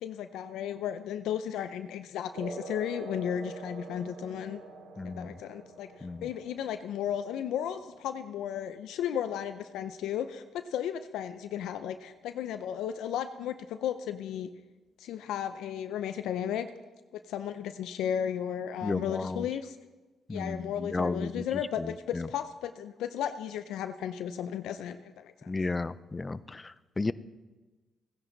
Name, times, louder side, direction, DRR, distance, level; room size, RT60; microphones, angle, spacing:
voice 1, 0.0-4.6 5.0-14.5 15.0-16.7 17.1-19.8 20.3-25.5, left 9 dB, 85° left, 9 dB, 0.5 m, -34 dB
sound 1, 2.4-9.4, right 3 dB, 70° right, 1.6 m, -46 dB
voice 2, 5.0-5.4 6.0-6.3 18.8-19.5 20.3-22.3 25.5-27.1, left 3 dB, 25° left, 17 dB, 0.4 m, -34 dB
16.5 x 10.0 x 4.0 m, 1.3 s
cardioid pair, 90°, 0 cm